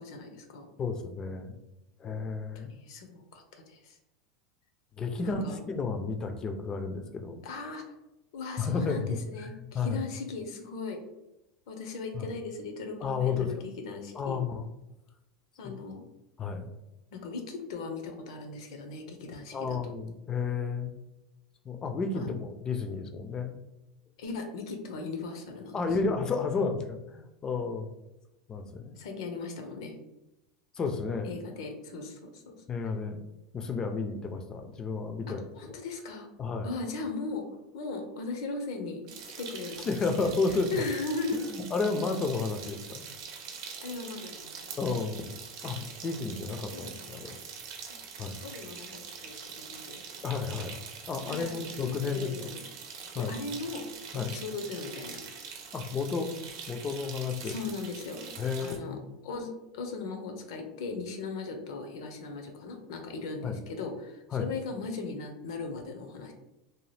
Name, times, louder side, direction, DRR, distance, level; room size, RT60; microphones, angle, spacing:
voice 1, 0.0-0.7 2.5-4.0 5.2-5.6 7.4-7.8 8.3-11.0 11.7-14.4 15.6-16.0 17.1-19.9 22.1-22.4 24.2-25.8 29.0-30.0 31.2-32.6 35.5-36.3 36.6-37.4 37.7-40.0 40.3-40.4 40.7-41.4 43.8-45.0 46.7-47.4 48.4-50.3 51.3-52.6 53.2-53.9 54.1-55.5 57.4-58.3 58.6-59.0 59.2-66.3, left 3 dB, 80° left, 5 dB, 0.6 m, -38 dB
voice 2, 0.8-1.6 2.0-2.7 5.0-7.4 8.6-10.0 12.1-12.3 13.0-13.5 14.1-14.7 16.4-16.7 19.5-20.9 21.6-23.5 25.7-27.9 28.5-29.0 30.7-31.3 32.7-33.2 33.5-35.4 36.4-36.7 39.9-40.8 41.5-43.0 44.8-45.3 45.6-47.4 48.2-48.4 50.2-50.8 51.1-52.5 53.1-53.3 54.1-54.4 55.7-56.3 56.7-57.5 58.4-59.1 63.4-63.6 64.3-64.5, left 4 dB, 25° left, 6 dB, 0.4 m, -32 dB
sound 1, 39.1-58.8, right 6 dB, 65° right, 0.7 m, -44 dB
2.8 x 2.2 x 3.2 m, 0.93 s
supercardioid pair, 125°, 3 cm